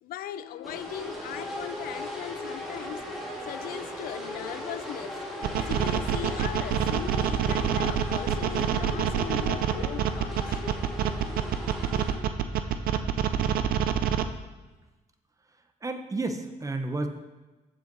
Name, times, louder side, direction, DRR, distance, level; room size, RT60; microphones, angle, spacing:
voice 1, 0.0-3.0 3.5-5.2 5.7-11.0, left 12 dB, 90° left, 0.4 m, -39 dB
sound 1, 0.6-12.2, left 1 dB, ahead, 1.8 m, -38 dB
sound 2, 5.4-14.2, right 9 dB, 85° right, 0.5 m, -26 dB
voice 2, 15.8-17.1, right 2 dB, 20° right, 0.8 m, -31 dB
7.9 x 7.1 x 3.9 m
cardioid pair, 95°, 15 cm